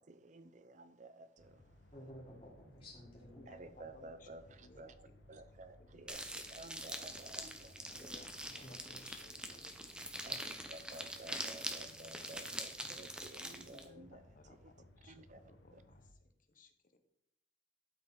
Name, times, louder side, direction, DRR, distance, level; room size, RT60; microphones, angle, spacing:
voice 1, 0.0-1.8 3.5-8.2 10.2-14.7 15.0-15.8, right 2 dB, 40° right, 0.6 m, -54 dB
sound 1, 1.4-16.1, left 1 dB, 75° left, 1.4 m, -62 dB
voice 2, 1.9-3.4 8.6-9.1 10.3-10.4, equal, 30° left, 3.6 m, -53 dB
voice 3, 3.4-5.4 5.8-6.2 7.9-10.1 13.6-16.2 16.5-17.0, left 3 dB, 45° left, 1.1 m, -61 dB
sound 2, 6.1-13.9, right 1 dB, 5° right, 0.8 m, -44 dB
12.5 x 6.1 x 4.0 m
head